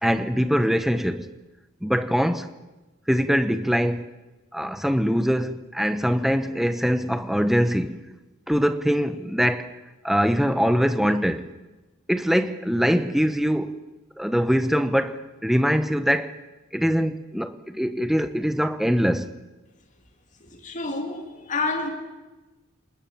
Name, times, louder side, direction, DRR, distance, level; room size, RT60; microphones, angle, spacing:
voice 1, 0.0-1.3 1.8-2.5 3.1-4.1 4.5-8.0 8.5-9.8 10.0-11.5 12.1-13.8 14.2-16.3 16.7-19.3, equal, ahead, 0.9 m, -23 dB
voice 2, 20.4-21.9, left 3 dB, 35° left, 2.5 m, -29 dB
27.5 x 20.0 x 7.2 m
head